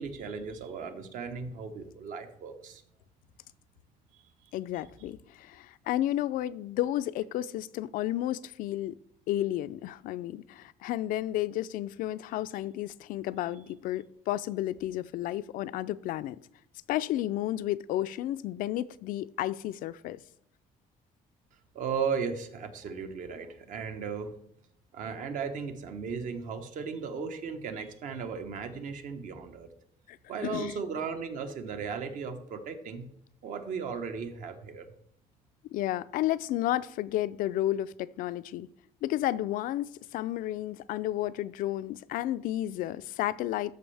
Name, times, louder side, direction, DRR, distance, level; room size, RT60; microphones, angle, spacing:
voice 1, 0.0-2.8 4.1-4.5 21.7-24.3 24.9-29.7 30.3-33.1 33.4-34.9, right 6 dB, 65° right, 1.1 m, -36 dB
voice 2, 4.5-9.0 9.3-16.4 16.9-20.2 30.1-30.2 30.4-30.7 35.7-38.7 39.0-43.7, left 13 dB, 75° left, 0.4 m, -32 dB
13.5 x 5.3 x 3.4 m
cardioid pair, 140°, 14 cm